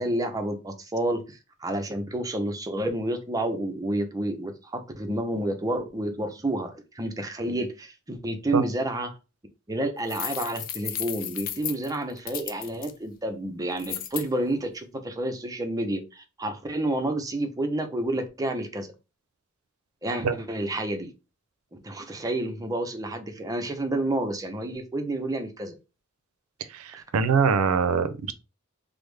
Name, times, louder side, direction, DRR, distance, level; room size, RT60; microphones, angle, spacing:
voice 1, 0.0-9.2 9.7-18.9 20.0-21.1 21.7-25.8, right 1 dB, 15° right, 0.5 m, -30 dB
sound 1, 10.1-12.9 13.8-14.3, left 11 dB, 40° left, 0.3 m, -34 dB
voice 2, 26.7-28.3, right 6 dB, 85° right, 0.4 m, -23 dB
3.4 x 2.0 x 3.1 m
head